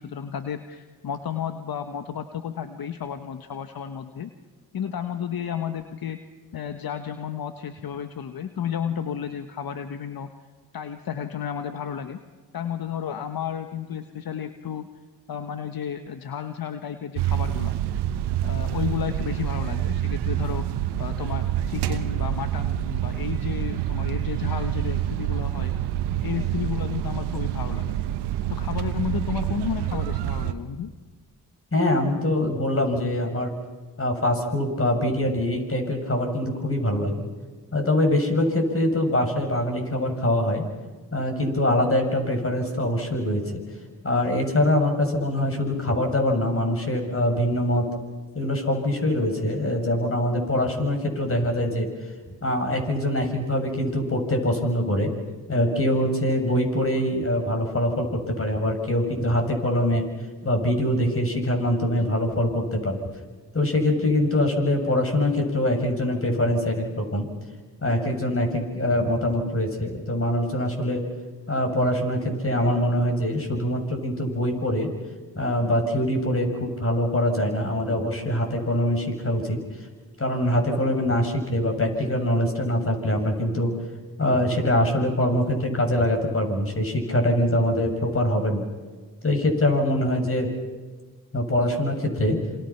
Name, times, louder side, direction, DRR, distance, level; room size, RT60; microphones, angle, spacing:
voice 1, 0.0-4.3 4.7-6.2 6.5-10.3 10.7-12.2 12.5-14.9 15.3-17.7 18.4-25.7 26.2-28.0 28.5-30.9, left 8 dB, 65° left, 8 dB, 1.5 m, -32 dB
sound 1, 17.2-30.5, right 11 dB, 85° right, 1.2 m, -27 dB
voice 2, 31.7-33.5 34.0-37.3 37.7-40.7 41.1-43.4 44.0-47.9 48.3-51.9 52.4-55.1 55.5-60.1 60.4-63.0 63.5-67.3 67.8-71.0 71.5-74.9 75.3-79.6 80.2-83.7 84.2-88.6 89.2-90.5 91.3-92.4, left 1 dB, 35° left, 4 dB, 7.2 m, -23 dB
27.5 x 26.5 x 6.0 m, 1.4 s
supercardioid pair, 45°, 39 cm